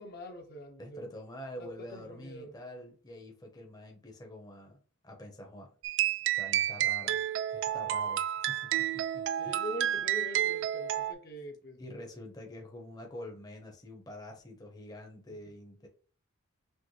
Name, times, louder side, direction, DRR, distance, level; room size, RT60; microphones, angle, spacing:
voice 1, 0.0-1.1 1.6-2.6 9.4-11.8, equal, 45° left, 0.8 m, -43 dB
voice 2, 0.8-4.8 5.0-5.7 6.3-7.2 7.5-9.6 11.8-15.9, left 1 dB, 20° left, 0.8 m, -46 dB
sound 1, 5.8-11.1, right 11 dB, 60° right, 0.3 m, -30 dB
6.3 x 2.1 x 3.2 m
head